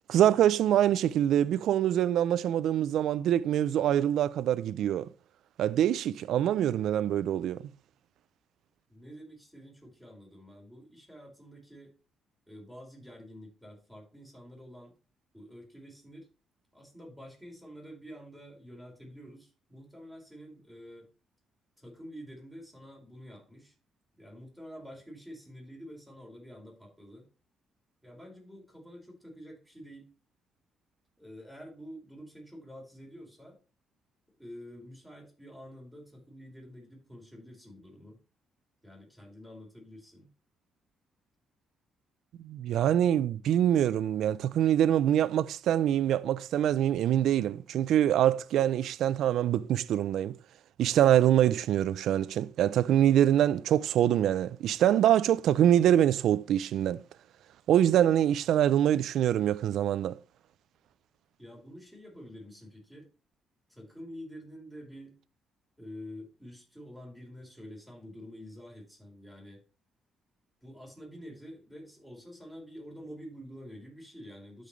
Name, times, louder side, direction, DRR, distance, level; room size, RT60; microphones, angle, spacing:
voice 1, 0.1-5.1 5.6-7.7 42.4-50.4 50.8-57.0 57.7-60.1, right 11 dB, 75° right, 0.4 m, -25 dB
voice 2, 8.9-11.9 12.5-14.9 15.3-16.3 16.7-21.1 21.8-23.7 24.2-27.3 28.0-30.1 31.2-33.6 34.4-38.2 38.8-40.3 61.4-63.1 63.7-65.2 65.8-69.6 70.6-74.7, equal, 5° left, 4.9 m, -48 dB
12.0 x 5.3 x 3.2 m
cardioid pair, 90°, 0 cm